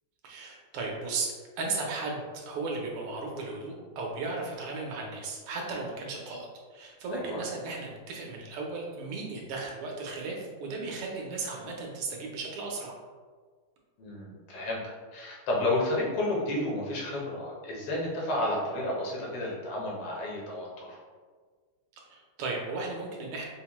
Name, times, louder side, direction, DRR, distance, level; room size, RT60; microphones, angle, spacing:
voice 1, 0.2-12.9 22.1-23.5, right 3 dB, 85° right, -1 dB, 1.7 m, -35 dB
voice 2, 7.1-7.4 14.0-21.0, left 1 dB, 90° left, -4 dB, 1.9 m, -31 dB
5.2 x 2.2 x 2.9 m, 1.5 s
omnidirectional pair, 2.4 m